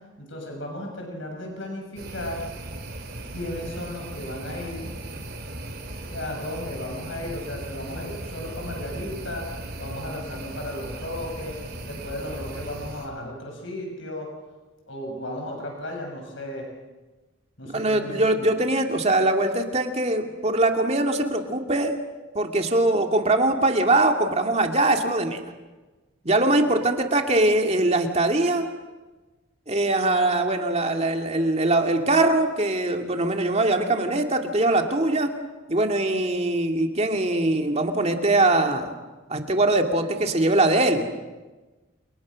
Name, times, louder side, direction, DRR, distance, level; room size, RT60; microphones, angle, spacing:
voice 1, 0.2-2.4 3.3-4.9 6.1-9.5 9.8-11.6 11.8-14.3 14.9-16.7 17.6-18.5, left 1 dB, 65° left, 1 dB, 7.1 m, -35 dB
sound 1, 2.0-13.1, right 1 dB, 50° right, 4.4 m, -37 dB
voice 2, 17.6-21.9 22.3-25.4 26.2-28.6 29.7-35.3 35.7-38.9 39.3-41.1, right 2 dB, 30° right, 4 dB, 2.3 m, -22 dB
30.0 x 29.0 x 6.4 m, 1.2 s
head